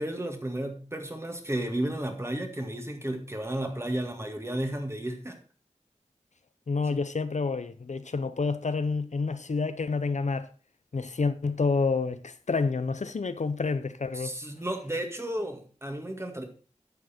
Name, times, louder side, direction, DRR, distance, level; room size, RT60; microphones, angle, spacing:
voice 1, 0.0-5.4 14.1-16.4, right 1 dB, 20° right, 1.9 m, -33 dB
voice 2, 6.7-10.5 10.9-14.3, left 4 dB, 70° left, 0.7 m, -28 dB
10.5 x 7.0 x 4.3 m
wide cardioid pair, 60°, 12 cm